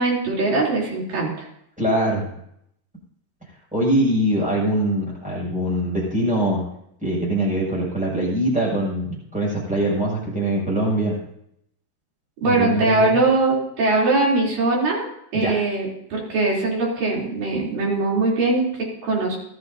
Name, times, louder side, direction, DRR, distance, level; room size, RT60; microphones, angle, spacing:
voice 1, 0.0-1.5 12.4-15.1 15.3-19.4, right 2 dB, 55° right, -4 dB, 5.0 m, -21 dB
voice 2, 1.8-2.3 3.7-6.6 7.0-11.2 12.4-13.2 15.3-15.5, right 1 dB, ahead, -5 dB, 6.5 m, -23 dB
18.5 x 13.0 x 2.8 m, 0.74 s
omnidirectional pair, 4.7 m